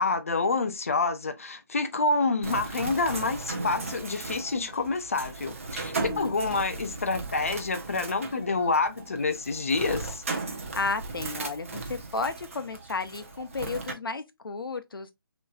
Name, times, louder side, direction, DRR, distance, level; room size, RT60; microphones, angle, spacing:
voice 1, 0.0-10.2, left 3 dB, 35° left, 0.5 m, -28 dB
Bird, 2.4-13.9, right 3 dB, 35° right, 0.8 m, -37 dB
voice 2, 6.0-6.4 10.7-15.1, left 3 dB, 65° left, 0.8 m, -33 dB
6.0 x 3.1 x 2.3 m
hypercardioid pair, 175°, 12 cm